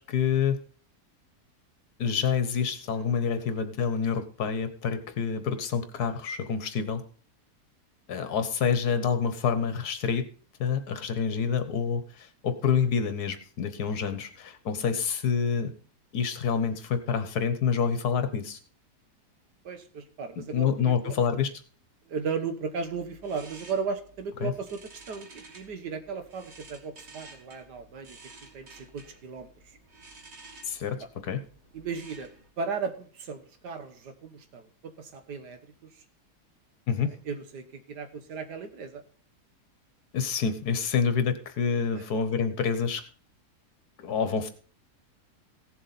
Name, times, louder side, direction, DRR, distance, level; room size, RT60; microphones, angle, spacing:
voice 1, 0.1-0.6 2.0-7.0 8.1-10.3 10.6-15.7 16.1-18.6 20.4-21.5 24.4-24.5 30.6-31.4 36.9-37.1 40.1-43.0 44.0-44.5, left 6 dB, 70° left, 10 dB, 1.7 m, -27 dB
voice 2, 19.7-21.2 22.1-28.2 28.5-29.8 31.7-32.3 32.6-36.0 37.1-39.0 42.0-42.1, right 5 dB, 90° right, 8 dB, 1.8 m, -36 dB
sound 1, 22.8-32.5, right 3 dB, 40° right, 2.0 m, -52 dB
16.5 x 7.3 x 4.1 m, 0.42 s
omnidirectional pair, 1.7 m